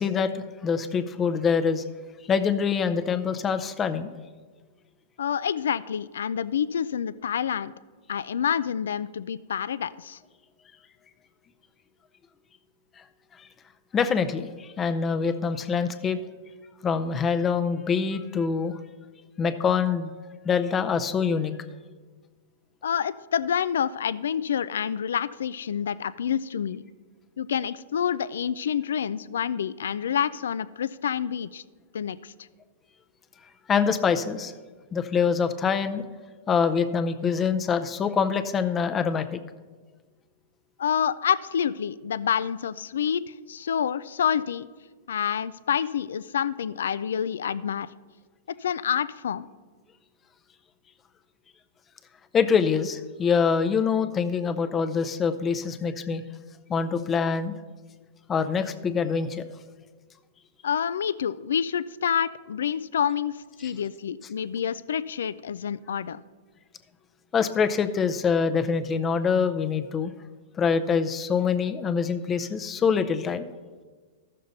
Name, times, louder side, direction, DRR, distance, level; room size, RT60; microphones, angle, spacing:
voice 1, 0.0-1.8 2.3-4.1 13.9-16.2 16.8-18.8 19.4-20.1 20.4-21.5 33.7-34.5 34.9-36.0 36.5-39.4 52.3-56.2 56.7-57.5 58.3-59.4 63.6-63.7 67.3-70.1 70.6-73.5, left 6 dB, 20° left, 9 dB, 0.5 m, -25 dB
voice 2, 5.2-7.7 8.1-10.2 22.8-26.8 27.4-31.6 31.9-32.3 40.8-44.7 45.1-47.9 48.5-49.5 60.6-66.2, left 8 dB, 90° left, 17 dB, 0.3 m, -28 dB
14.0 x 6.5 x 4.0 m, 1.4 s
hypercardioid pair, 145°, 0 cm